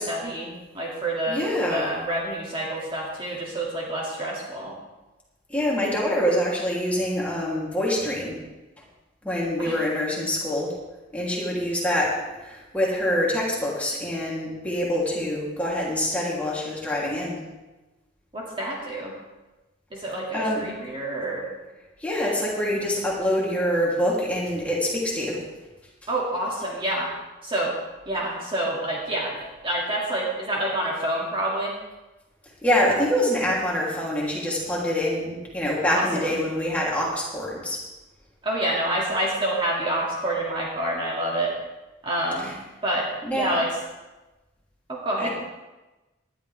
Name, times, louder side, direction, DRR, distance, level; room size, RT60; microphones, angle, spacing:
voice 1, 0.0-4.8 9.6-9.8 18.3-19.1 19.9-21.5 26.1-27.1 27.4-27.8 28.1-31.8 35.9-36.4 38.4-41.5 42.0-42.5 42.8-43.7 44.9-45.3, right 1 dB, 25° right, -3 dB, 2.3 m, -28 dB
voice 2, 1.3-1.9 5.5-8.4 9.2-10.7 11.1-17.4 20.3-20.6 22.0-25.4 32.6-37.8 42.4-42.5 43.2-43.5 45.2-45.3, left 1 dB, 5° left, -5 dB, 3.0 m, -25 dB
19.0 x 11.5 x 3.4 m, 1.1 s
head